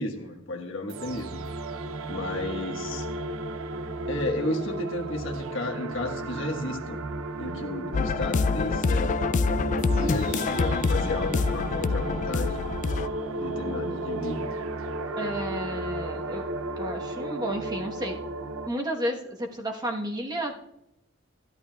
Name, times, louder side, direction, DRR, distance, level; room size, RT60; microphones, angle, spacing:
voice 1, 0.0-1.4 2.1-3.1 4.1-7.0 7.4-9.5 9.7-12.7 13.3-14.5, left 2 dB, 65° left, 2 dB, 1.4 m, -33 dB
sound 1, 0.9-18.7, right 2 dB, 85° right, 0.5 m, -34 dB
sound 2, 1.7-15.6, right 2 dB, 35° right, 3.1 m, -47 dB
sound 3, 7.9-13.1, left 4 dB, 40° left, 0.3 m, -26 dB
voice 2, 15.2-16.4 16.8-18.1 18.6-20.5, right 1 dB, 20° right, 0 dB, 1.1 m, -32 dB
13.5 x 11.0 x 2.3 m, 0.83 s
head